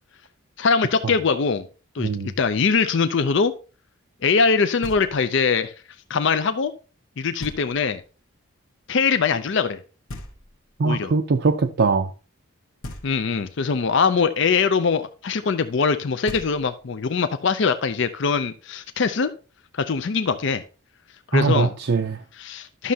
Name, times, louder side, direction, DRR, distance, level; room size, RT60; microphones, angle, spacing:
voice 1, 0.6-1.7 1.9-2.1 2.4-3.5 4.2-5.7 6.1-6.7 7.2-8.0 8.9-9.8 10.8-11.1 13.0-19.3 19.7-20.6 21.3-21.7 22.3-22.9, left 5 dB, 55° left, 0.5 m, -22 dB
voice 2, 2.0-2.3 10.8-12.1 21.3-22.2, right 4 dB, 50° right, 0.5 m, -21 dB
Knock, 4.8-5.5 7.4-8.1 10.1-10.9 12.8-13.6 15.9-16.0 16.3-17.1, left 1 dB, 80° left, 1.5 m, -40 dB
11.5 x 6.3 x 2.8 m
head